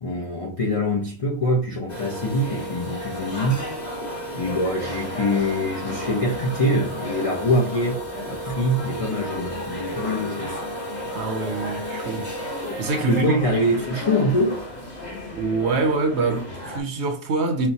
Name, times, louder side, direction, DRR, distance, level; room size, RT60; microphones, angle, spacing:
voice 1, 0.0-3.6 4.4-10.6 13.1-14.6, left 1 dB, 55° left, 0.4 m, -24 dB
sound 1, 1.9-16.8, equal, 35° left, 0.9 m, -32 dB
voice 2, 11.1-12.3 12.8-13.5 15.4-17.7, right 3 dB, 65° right, 0.8 m, -25 dB
4.3 x 2.1 x 2.6 m
omnidirectional pair, 1.4 m